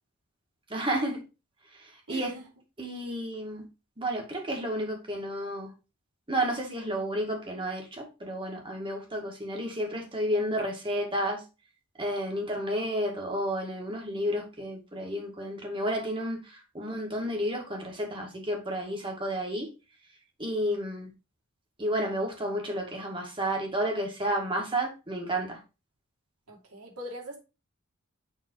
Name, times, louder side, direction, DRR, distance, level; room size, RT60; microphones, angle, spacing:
voice 1, 0.7-1.2 2.1-2.3 2.8-3.6 4.0-5.7 6.3-11.4 12.0-19.7 20.4-21.1 21.8-25.6, right 1 dB, 25° right, 1 dB, 2.0 m, -31 dB
voice 2, 2.1-2.4 26.5-27.4, equal, 85° right, -1 dB, 2.7 m, -41 dB
7.2 x 4.0 x 4.5 m, 0.29 s
head